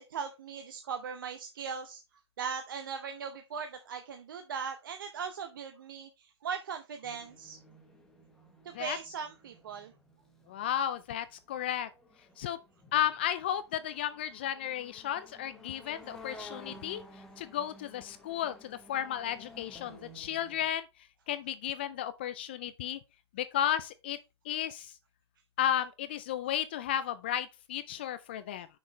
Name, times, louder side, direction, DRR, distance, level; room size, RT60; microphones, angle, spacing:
voice 1, 0.0-2.0 2.4-7.6 8.6-9.9 16.7-16.8, right 6 dB, 50° right, 0.8 m, -39 dB
sound 1, 7.0-20.7, left 1 dB, 5° left, 0.9 m, -54 dB
voice 2, 10.5-11.9 12.4-12.6 12.9-20.9 21.3-23.0 23.3-24.2 24.4-25.0 25.6-28.7, left 11 dB, 25° left, 0.3 m, -33 dB
6.4 x 6.1 x 4.0 m
hypercardioid pair, 155°, 15 cm